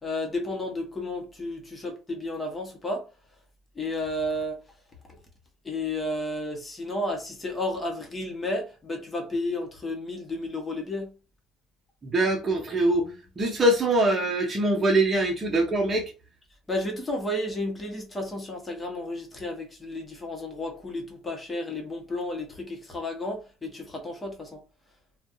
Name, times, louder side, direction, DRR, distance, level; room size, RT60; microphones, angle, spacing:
voice 1, 0.0-3.1 3.7-4.6 5.6-11.1 16.7-24.6, left 1 dB, 20° left, 1.2 m, -32 dB
voice 2, 12.0-16.1, right 1 dB, 25° right, 0.8 m, -23 dB
3.2 x 2.4 x 2.6 m
cardioid pair, 105°, 0 cm